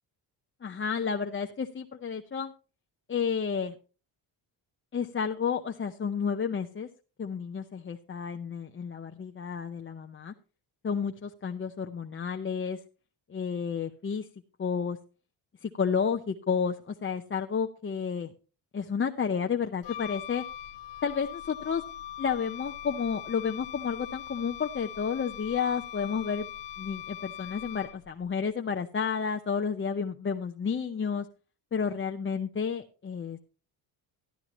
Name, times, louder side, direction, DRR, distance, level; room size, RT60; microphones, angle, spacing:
voice 1, 0.6-2.5 3.1-3.7 4.9-6.9 7.2-10.3 10.8-12.8 13.3-14.3 14.6-15.0 15.6-18.3 18.7-20.4 21.0-21.8 22.2-26.5 26.8-31.3 31.7-33.4, left 6 dB, 25° left, 4 dB, 0.8 m, -31 dB
Wind instrument woodwind instrument, 19.8-28.2, left 11 dB, 65° left, 0.8 m, -41 dB
12.5 x 12.0 x 3.0 m, 0.34 s
cardioid pair, 85°, 46 cm